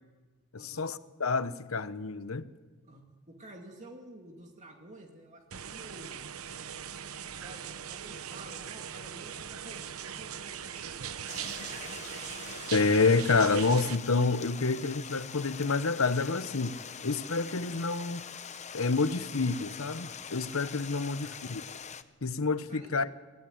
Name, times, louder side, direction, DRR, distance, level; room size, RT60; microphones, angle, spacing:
voice 1, 0.5-2.4 12.7-18.2 18.7-21.6 22.2-23.1, left 4 dB, 70° left, 0.9 m, -28 dB
voice 2, 2.8-6.2 7.2-12.2 21.0-21.3 22.7-22.9, right 1 dB, 35° right, 2.4 m, -51 dB
sound 1, 5.5-14.0, right 8 dB, 80° right, 0.9 m, -40 dB
Stream, 11.3-22.0, left 7 dB, 35° left, 0.9 m, -44 dB
25.0 x 17.0 x 9.4 m
head